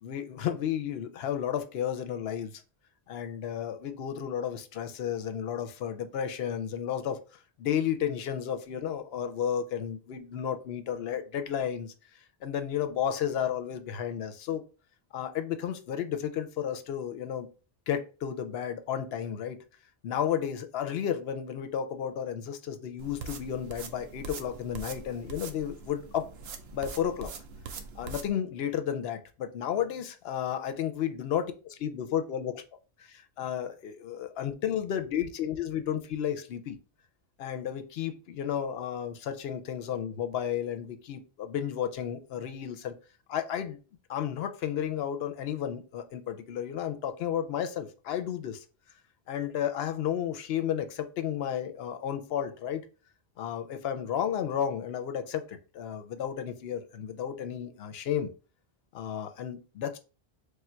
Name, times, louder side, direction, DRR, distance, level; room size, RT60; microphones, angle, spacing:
voice 1, 0.0-2.6 3.1-11.9 12.4-14.6 15.1-17.5 17.9-19.6 20.0-26.2 26.7-27.3 28.0-32.6 33.0-36.8 37.4-42.9 43.3-43.8 44.1-48.6 49.3-52.8 53.4-58.3 58.9-60.0, left 9 dB, 75° left, 0.8 m, -32 dB
sound 1, 23.0-28.3, right 4 dB, 75° right, 0.8 m, -43 dB
3.3 x 2.4 x 4.2 m
omnidirectional pair, 1.1 m